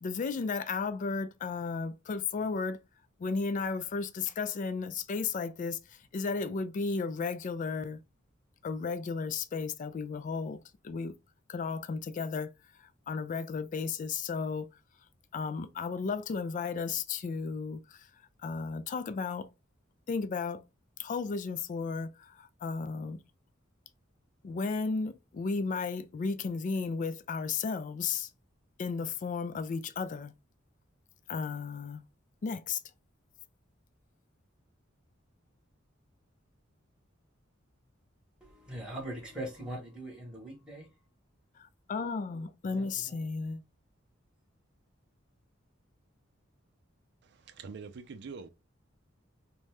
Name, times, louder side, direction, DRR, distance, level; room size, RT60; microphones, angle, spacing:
voice 1, 0.0-2.8 3.2-5.8 6.1-8.0 8.6-11.1 11.5-12.5 13.1-14.7 15.3-18.0 18.4-19.5 20.1-20.6 21.0-23.2 24.4-28.3 28.8-30.3 31.3-32.0 32.4-32.8 41.6-43.6, left 4 dB, 40° left, 0.3 m, -34 dB
voice 2, 38.4-40.9 42.7-43.2 43.5-43.6, right 1 dB, 5° right, 1.0 m, -41 dB
voice 3, 47.2-48.5, right 5 dB, 60° right, 0.4 m, -45 dB
2.6 x 2.2 x 3.2 m
head